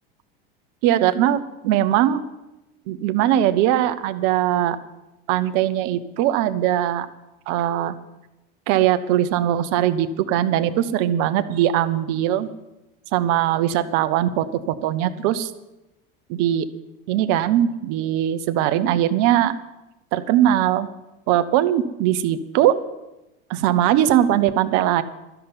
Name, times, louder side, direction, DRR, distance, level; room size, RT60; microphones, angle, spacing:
voice 1, 0.8-2.2 2.9-4.8 5.3-7.1 7.5-7.9 8.7-12.5 13.1-14.4 14.8-15.5 16.3-16.7 17.1-19.5 20.1-20.9 21.3-22.7 23.5-25.0, right 12 dB, 60° right, 11 dB, 1.1 m, -20 dB
13.0 x 7.0 x 9.8 m, 0.98 s
supercardioid pair, 105°, 29 cm